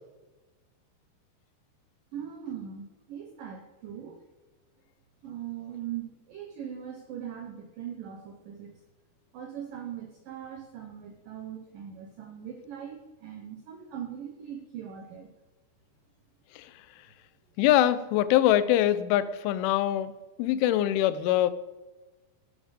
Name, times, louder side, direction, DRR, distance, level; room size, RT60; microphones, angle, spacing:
voice 1, 2.1-4.2 5.2-8.7 9.3-15.3, right 9 dB, 80° right, 1.9 m, -40 dB
voice 2, 17.6-20.1 20.4-21.5, left 12 dB, 85° left, 3.1 m, -23 dB
16.5 x 10.5 x 5.1 m
omnidirectional pair, 5.5 m